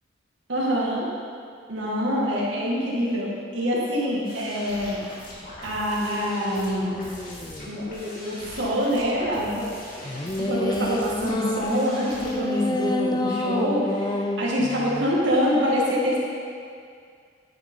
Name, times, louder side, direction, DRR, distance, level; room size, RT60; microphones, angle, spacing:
voice 1, 0.5-1.1 1.7-5.0 5.6-6.9 7.7-9.8 10.1-16.2, equal, 75° right, -5 dB, 2.3 m, -25 dB
sound 1, 4.2-12.3, equal, 50° left, 2.7 m, -41 dB
sound 2, 6.0-7.8 10.0-15.1, left 1 dB, 20° left, 0.5 m, -29 dB
10.0 x 9.2 x 3.9 m, 2.2 s
head